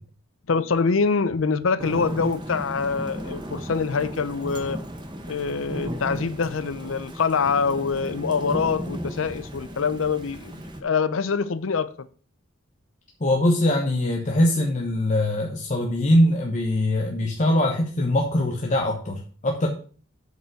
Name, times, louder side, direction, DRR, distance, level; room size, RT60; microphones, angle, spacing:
voice 1, 0.5-4.8 5.3-10.5 10.8-12.1, left 5 dB, 85° left, 0.6 m, -25 dB
Thunder / Rain, 1.8-10.8, equal, 25° right, 1.4 m, -35 dB
voice 2, 13.2-19.7, left 1 dB, 40° left, 1.1 m, -22 dB
8.0 x 5.3 x 6.3 m
head